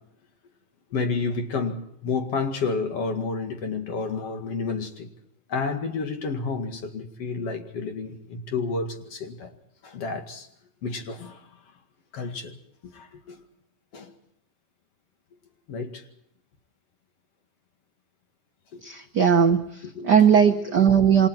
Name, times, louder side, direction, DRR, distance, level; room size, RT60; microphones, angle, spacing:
voice 1, 0.9-5.1 5.5-9.5 9.8-10.5 10.8-11.4 12.1-12.6 12.9-13.4 13.9-14.1 15.7-16.0 18.7-18.8 19.8-20.7, left 4 dB, 55° left, 5 dB, 3.0 m, -30 dB
voice 2, 18.8-19.6 20.0-21.3, right 7 dB, 70° right, 5 dB, 0.9 m, -18 dB
28.0 x 25.0 x 4.5 m, 0.74 s
omnidirectional pair, 3.5 m